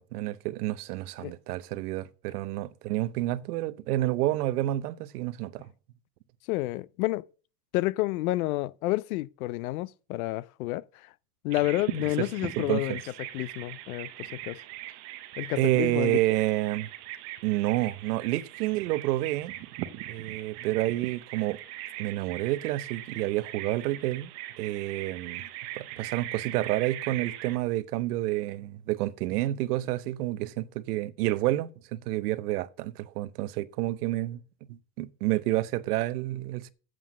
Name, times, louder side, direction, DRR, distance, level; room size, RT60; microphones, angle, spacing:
voice 1, 0.0-5.7 12.2-12.3 12.6-13.0 15.6-16.9 17.4-19.5 20.1-21.6 22.0-24.3 24.6-25.4 25.8-34.4 34.7-36.7, right 16 dB, 70° right, 0.8 m, -29 dB
voice 2, 6.5-7.2 7.7-11.1 11.4-13.0 13.3-14.6 15.4-16.2, left 18 dB, 65° left, 0.6 m, -30 dB
Bird vocalization bird call bird song, 11.5-27.6, right 14 dB, 35° right, 0.7 m, -40 dB
7.8 x 7.5 x 6.1 m
supercardioid pair, 160°, 47 cm